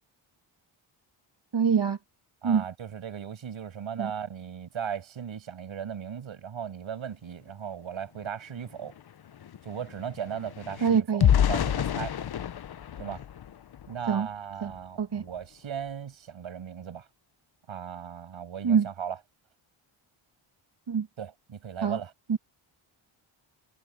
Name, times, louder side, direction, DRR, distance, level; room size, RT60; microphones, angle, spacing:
voice 1, 1.5-2.0 2.4-2.6 4.0-4.1 10.8-11.3 14.1-14.3 14.6-14.7 15.0-15.2 18.6-18.9 20.9-21.1 21.8-22.0 22.3-22.4, right 6 dB, 55° right, 2.6 m, -25 dB
voice 2, 2.4-8.9 9.6-11.2 11.5-12.1 13.0-13.2 13.9-17.1 17.7-19.2 21.2-22.1, right 8 dB, 75° right, 7.6 m, -37 dB
sound 1, 8.2-8.3 8.6-14.1 14.6-14.8 15.2-15.4, left 10 dB, 50° left, 0.8 m, -29 dB
wide cardioid pair, 105°, 48 cm